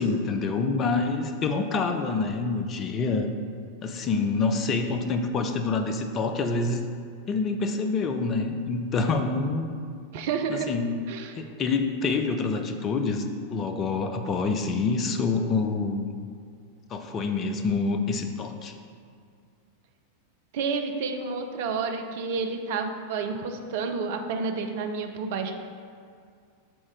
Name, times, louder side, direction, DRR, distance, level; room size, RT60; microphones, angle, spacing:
voice 1, 0.0-3.3 3.8-6.9 7.3-9.7 10.5-11.0 11.4-13.2 13.5-16.1 16.9-18.7, left 4 dB, 30° left, 6 dB, 0.5 m, -26 dB
voice 2, 10.1-10.7 11.1-11.4 20.5-25.5, right 5 dB, 50° right, 5 dB, 0.5 m, -30 dB
6.2 x 3.7 x 4.7 m, 2.2 s
figure-of-eight pair, 90°, 0 cm